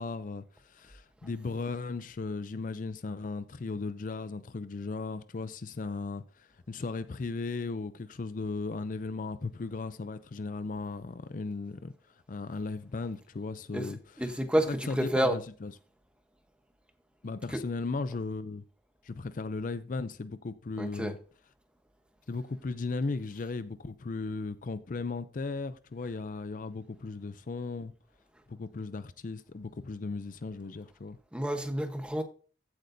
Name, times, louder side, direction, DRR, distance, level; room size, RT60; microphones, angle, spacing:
voice 1, 0.0-11.9 12.3-14.3 14.7-15.7 17.2-18.6 19.0-21.2 22.3-27.9 28.5-31.2, left 3 dB, 50° left, 0.5 m, -36 dB
voice 2, 14.2-15.4 17.5-17.6 20.8-21.1 31.3-32.2, right 1 dB, 5° right, 1.0 m, -29 dB
15.0 x 7.9 x 2.7 m
head